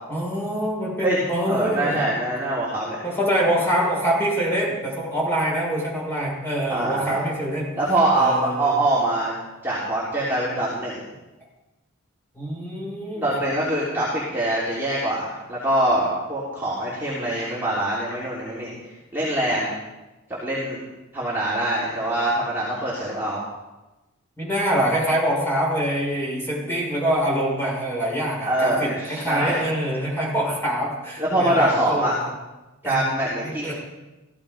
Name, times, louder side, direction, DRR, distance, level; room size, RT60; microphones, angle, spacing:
voice 1, 0.1-2.0 3.0-7.8 8.1-8.7 12.3-13.3 24.4-32.1 32.8-33.0 33.4-33.7, equal, 10° left, -4 dB, 5.8 m, -25 dB
voice 2, 1.5-3.0 6.7-7.2 7.7-9.3 9.6-11.1 13.2-18.7 19.1-19.7 20.3-20.8 21.1-23.4 28.4-29.6 31.2-32.2 32.8-33.7, right 1 dB, 10° right, -8 dB, 3.2 m, -24 dB
16.0 x 14.5 x 5.1 m, 1.1 s
head